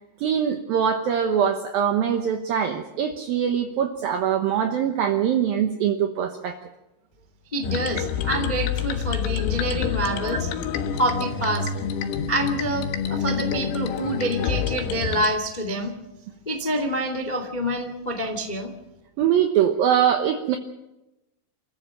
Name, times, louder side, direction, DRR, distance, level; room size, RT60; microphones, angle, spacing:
voice 1, 0.2-6.6 19.2-20.6, right 8 dB, 75° right, 4 dB, 2.2 m, -23 dB
voice 2, 7.5-10.5 10.9-11.7 12.3-15.9 16.4-18.7, right 1 dB, 70° left, 5 dB, 0.4 m, -27 dB
sound 1, 7.6-15.3, left 7 dB, 90° left, 4.2 m, -27 dB
28.5 x 14.5 x 7.6 m, 0.96 s
omnidirectional pair, 5.8 m